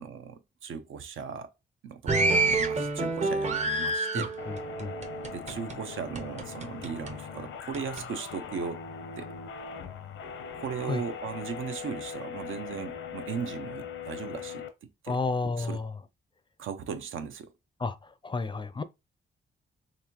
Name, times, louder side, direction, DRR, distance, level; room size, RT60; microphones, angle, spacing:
voice 1, 0.0-1.5 1.8-4.3 5.3-8.8 9.2-9.3 10.6-15.2 15.6-15.8 16.6-17.5, right 6 dB, 80° right, 0.6 m, -37 dB
sound 1, 2.1-5.8 6.1-7.1 7.7-8.0, right 2 dB, 35° right, 0.6 m, -28 dB
voice 2, 4.1-4.9 10.8-11.0 15.1-15.9 17.8-18.8, left 3 dB, 25° left, 0.4 m, -32 dB
sound 2, 4.4-14.7, left 6 dB, 90° left, 0.7 m, -40 dB
4.0 x 2.9 x 2.9 m
cardioid pair, 80°, 20 cm